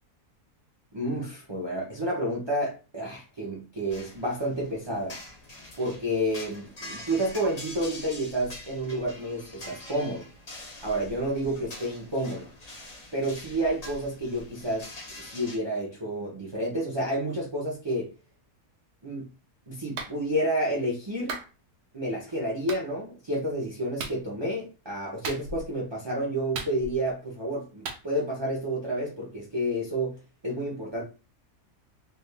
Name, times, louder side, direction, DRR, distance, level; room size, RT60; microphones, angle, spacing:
voice 1, 0.9-5.2 5.8-10.3 10.8-12.5 13.1-18.1 19.0-19.3 19.7-21.4 21.9-31.0, right 1 dB, 25° right, 0.6 m, -30 dB
sound 1, 3.9-15.6, left 1 dB, 35° left, 0.6 m, -44 dB
Clapping, 20.0-20.1 21.3-21.5 22.7-22.8 24.0-24.2 25.2-25.7 26.5-27.1 27.9-28.0, right 4 dB, 80° right, 1.2 m, -36 dB
3.4 x 2.4 x 3.3 m
omnidirectional pair, 1.7 m